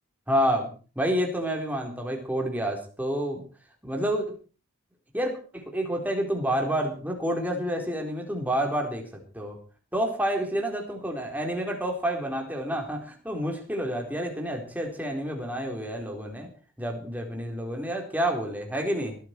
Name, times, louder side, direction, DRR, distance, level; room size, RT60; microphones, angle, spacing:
voice 1, 0.3-0.7 1.0-3.4 3.8-4.3 5.1-9.6 9.9-16.5 16.8-19.2, equal, 5° right, 2 dB, 4.0 m, -29 dB
20.5 x 14.0 x 4.6 m, 0.38 s
head